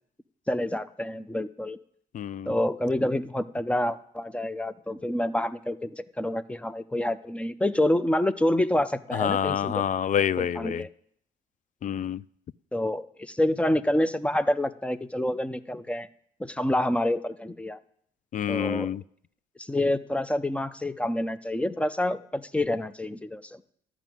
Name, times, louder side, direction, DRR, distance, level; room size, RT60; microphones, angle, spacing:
voice 1, 0.5-1.8 2.5-9.7 10.4-10.9 12.7-16.1 16.4-17.8 18.5-18.9 19.6-23.6, left 1 dB, 5° left, 0.7 m, -27 dB
voice 2, 2.1-2.6 9.1-10.9 11.8-12.2 18.3-19.0, left 9 dB, 45° left, 0.4 m, -27 dB
12.0 x 6.1 x 9.2 m
cardioid pair, 80°, 18 cm